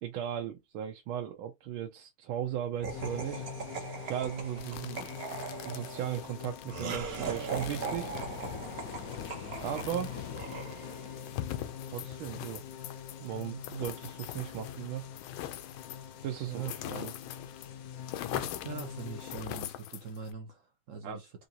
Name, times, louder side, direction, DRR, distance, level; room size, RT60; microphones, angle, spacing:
voice 1, 0.0-3.5 4.0-5.1 5.6-8.1 9.6-10.2 11.9-12.6 13.2-15.0 16.2-17.1 21.0-21.2, right 10 dB, 90° right, 1.5 m, -37 dB
Laughter, 2.8-11.2, right 5 dB, 55° right, 1.4 m, -40 dB
sound 1, 2.9-19.4, left 8 dB, 65° left, 0.9 m, -44 dB
sound 2, 4.6-17.7 17.9-20.3, left 13 dB, 80° left, 1.3 m, -43 dB
voice 2, 18.3-21.3, right 7 dB, 70° right, 0.7 m, -41 dB
4.7 x 2.6 x 2.7 m
omnidirectional pair, 2.2 m